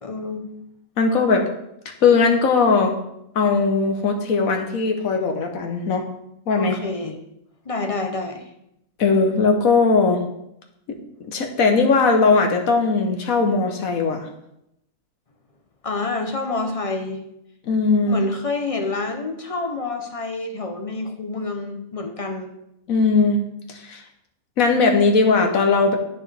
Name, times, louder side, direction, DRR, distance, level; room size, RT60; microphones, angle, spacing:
voice 1, 0.0-0.4 6.6-7.2 7.7-8.5 15.8-17.2 18.1-22.5, left 3 dB, 35° left, 4 dB, 0.5 m, -28 dB
voice 2, 1.0-1.4 1.8-2.9 3.3-6.0 6.5-6.8 9.0-10.2 10.9-14.3 17.7-18.2 22.9-23.4 23.7-24.0 24.6-26.0, left 4 dB, 65° left, 3 dB, 1.3 m, -19 dB
12.5 x 4.4 x 3.3 m, 0.81 s
omnidirectional pair, 1.6 m